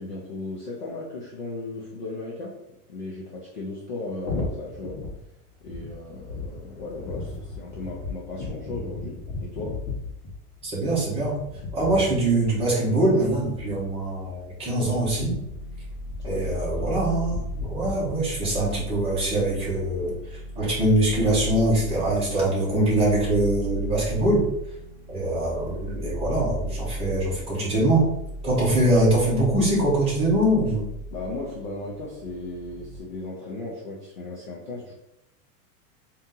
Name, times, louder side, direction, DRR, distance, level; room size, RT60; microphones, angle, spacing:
voice 1, 0.0-2.6 2.9-5.0 5.6-9.8 16.2-17.0 31.1-35.0, left 2 dB, 35° left, -4 dB, 0.4 m, -36 dB
sound 1, 4.2-18.1, left 3 dB, 60° left, 1.2 m, -36 dB
voice 2, 10.6-11.4 11.7-15.4 16.2-17.4 17.7-24.5 25.1-28.1 28.4-30.9, right 1 dB, 15° right, -7 dB, 1.0 m, -23 dB
sound 2, 15.0-33.0, equal, 5° left, 1.0 m, -36 dB
3.6 x 2.8 x 3.6 m, 0.85 s
supercardioid pair, 180°, 46 cm